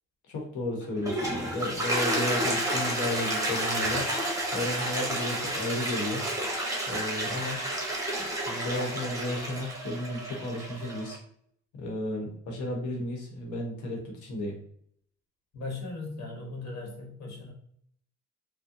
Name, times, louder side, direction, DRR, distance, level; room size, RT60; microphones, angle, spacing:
voice 1, 0.3-4.1 4.5-6.2 6.9-7.6 8.2-11.2 11.7-14.5, left 1 dB, 85° left, 0 dB, 1.0 m, -33 dB
Toilet flush, 0.8-11.2, right 1 dB, 10° right, 0.9 m, -31 dB
voice 2, 15.5-17.5, left 3 dB, 60° left, 0 dB, 1.2 m, -38 dB
3.5 x 2.1 x 2.8 m, 0.65 s
cardioid pair, 90°, 30 cm